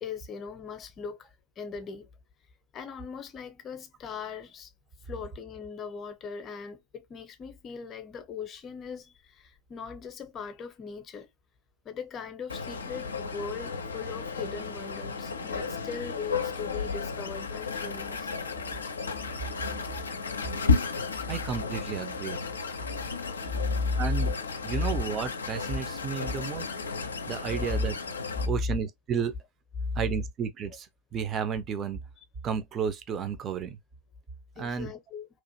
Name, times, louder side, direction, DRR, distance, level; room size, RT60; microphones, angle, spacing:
voice 1, 0.0-1.3 1.6-2.1 2.7-4.7 5.0-11.3 11.8-18.3 23.4-24.0 26.0-26.1 26.3-26.4 27.7-27.9 34.6-35.3, left 5 dB, 25° left, 0.7 m, -38 dB
sound 1, 12.5-28.5, left 4 dB, 70° left, 0.4 m, -33 dB
voice 2, 21.3-22.4 24.0-24.3 24.6-26.7 27.3-28.0 28.5-29.4 30.0-32.0 32.4-33.8 34.6-34.9, right 7 dB, 25° right, 0.6 m, -32 dB
3.0 x 2.4 x 2.7 m
figure-of-eight pair, 90°, 0 cm